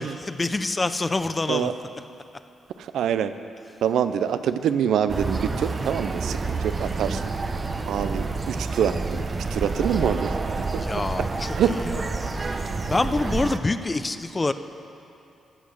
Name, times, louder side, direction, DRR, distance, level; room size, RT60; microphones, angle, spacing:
voice 1, 0.0-1.7 10.9-11.3 12.8-14.5, left 2 dB, 30° left, 11 dB, 0.5 m, -25 dB
voice 2, 2.8-3.3 3.8-7.3 7.9-10.3 10.7-10.8 11.6-11.7, right 9 dB, 80° right, 11 dB, 0.4 m, -25 dB
sound 1, 5.1-13.6, right 3 dB, 40° right, 0.7 m, -28 dB
13.5 x 6.4 x 6.3 m, 2.7 s
supercardioid pair, 60°, 0 cm